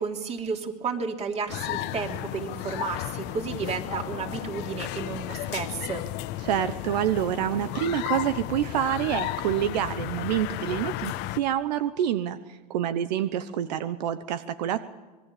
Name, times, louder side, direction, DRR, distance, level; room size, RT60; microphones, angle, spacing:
voice 1, 0.0-6.0, right 5 dB, 30° right, 3 dB, 3.2 m, -32 dB
sound 1, 1.5-11.4, left 15 dB, 55° left, 1.1 m, -33 dB
voice 2, 6.4-14.8, right 10 dB, 80° right, 12 dB, 1.1 m, -27 dB
26.0 x 21.0 x 7.0 m, 1.3 s
supercardioid pair, 115°, 21 cm